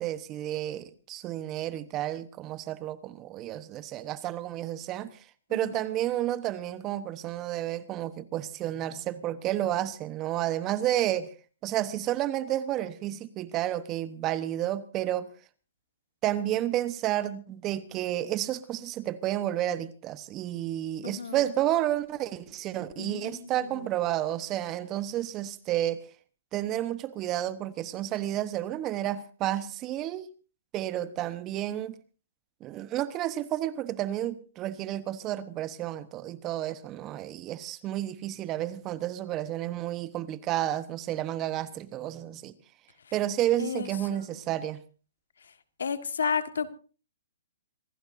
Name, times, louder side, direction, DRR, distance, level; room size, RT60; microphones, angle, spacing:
voice 1, 0.0-5.2 5.5-11.3 11.6-15.3 16.2-26.1 26.5-30.3 30.7-32.0 32.6-42.6 43.1-44.8, right 13 dB, 25° right, 1.1 m, -31 dB
voice 2, 5.5-5.8 21.0-21.5 23.0-23.9 43.6-44.3 45.4-45.5 45.8-46.7, left 6 dB, 80° left, 1.6 m, -33 dB
26.0 x 16.5 x 2.7 m
hypercardioid pair, 135°, 0 cm